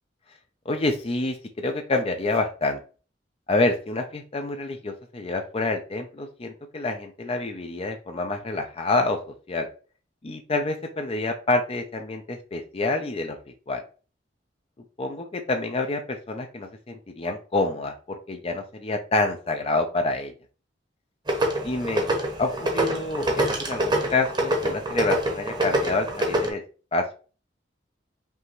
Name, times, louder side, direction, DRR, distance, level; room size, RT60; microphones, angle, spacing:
voice 1, 0.7-2.8 3.5-9.2 9.5-9.7 10.2-13.4 13.7-13.8 15.0-20.3 21.6-22.1 22.4-26.6 26.9-27.1, left 2 dB, 35° left, 6 dB, 0.5 m, -27 dB
sound 1, 21.3-26.5, right 1 dB, 25° right, 0.9 m, -25 dB
5.4 x 2.9 x 3.1 m, 0.37 s
head